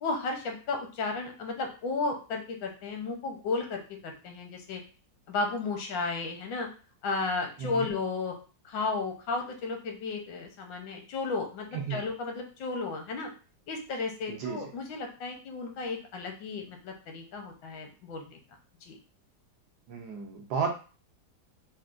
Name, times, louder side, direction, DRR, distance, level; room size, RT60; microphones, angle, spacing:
voice 1, 0.0-4.8 5.3-6.7 7.0-8.3 8.6-13.3 13.7-18.4 18.8-19.0, left 3 dB, 80° left, 3 dB, 1.4 m, -34 dB
voice 2, 14.3-14.6 19.9-20.7, right 6 dB, 70° right, 2 dB, 1.1 m, -33 dB
4.2 x 2.1 x 2.4 m, 0.35 s
omnidirectional pair, 2.0 m